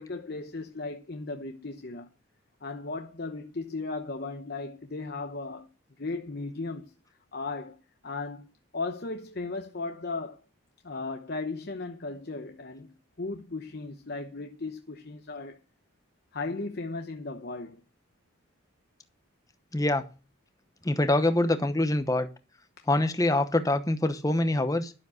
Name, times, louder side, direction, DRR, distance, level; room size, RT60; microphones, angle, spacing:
voice 1, 0.0-2.1 2.6-5.7 6.0-6.9 7.3-7.8 8.0-10.4 10.8-15.6 16.3-17.8 22.8-22.9, left 3 dB, 45° left, 0.9 m, -36 dB
voice 2, 19.7-20.0 20.8-22.3 22.9-24.9, left 1 dB, 15° left, 0.9 m, -25 dB
12.0 x 7.3 x 6.3 m
head